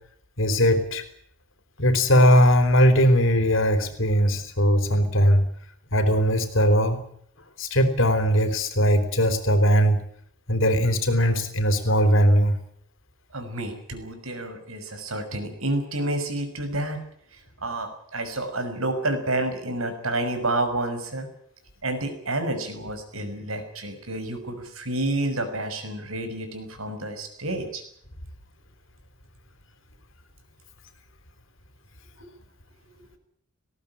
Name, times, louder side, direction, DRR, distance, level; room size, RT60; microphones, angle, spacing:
voice 1, 0.4-1.0 1.8-5.4 5.9-7.0 7.6-10.0 10.5-12.6, equal, 65° left, 10 dB, 3.6 m, -19 dB
voice 2, 13.3-17.0 17.6-21.3 21.8-27.8, right 2 dB, 85° right, 7 dB, 6.0 m, -29 dB
19.5 x 17.5 x 10.0 m, 0.65 s
head